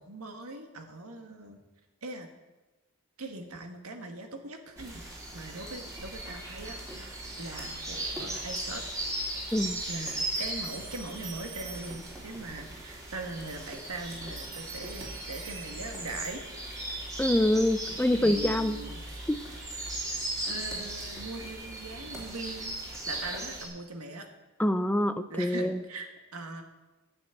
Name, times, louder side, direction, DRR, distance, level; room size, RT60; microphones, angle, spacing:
voice 1, 0.0-1.6 2.0-2.3 3.2-5.0 5.3-8.8 9.9-16.4 17.9-19.0 20.1-22.8 23.1-24.3 25.3-26.6, right 2 dB, 85° right, 5 dB, 1.7 m, -41 dB
sound 1, 4.8-23.7, right 1 dB, 15° right, 2.5 m, -37 dB
voice 2, 9.5-9.8 17.2-18.8 24.6-25.8, left 1 dB, 5° left, 11 dB, 0.5 m, -25 dB
sound 2, 9.5-12.3 13.2-16.3, right 6 dB, 40° right, 3.5 m, -47 dB
11.5 x 6.3 x 8.9 m, 1.1 s
head